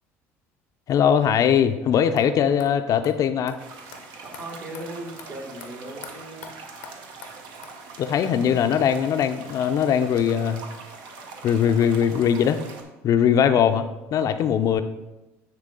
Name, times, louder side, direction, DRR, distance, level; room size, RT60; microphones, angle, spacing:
voice 1, 0.9-3.6 8.0-10.6 11.4-12.6 13.0-14.8, left 8 dB, 50° left, 9 dB, 0.4 m, -21 dB
sound 1, 2.2-2.3 2.6-2.7 3.0-3.1 3.5-3.6 3.9-4.0 4.3-4.4 4.7-4.9 5.2-5.3 5.6-5.7 6.0-6.1 6.4-6.5 6.8-6.9 7.2-7.3 7.6-7.7, left 7 dB, 90° left, 0.8 m, -42 dB
sound 2, 3.6-12.8, right 4 dB, 70° right, 0.9 m, -43 dB
voice 2, 4.2-6.5, right 1 dB, 55° right, 0 dB, 2.0 m, -38 dB
9.7 x 3.3 x 3.7 m, 1.0 s
hypercardioid pair, 70°, 7 cm